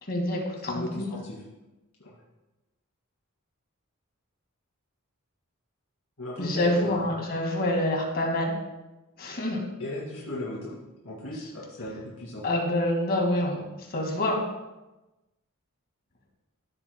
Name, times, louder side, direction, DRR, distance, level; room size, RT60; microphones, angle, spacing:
voice 1, 0.1-1.1 6.4-8.5 9.2-9.6 12.4-14.4, left 1 dB, 45° left, 0 dB, 2.0 m, -27 dB
voice 2, 0.7-1.4 6.2-7.1 9.8-10.8 11.0-12.4, left 1 dB, 75° left, -6 dB, 2.4 m, -36 dB
15.0 x 7.8 x 2.2 m, 1.0 s
head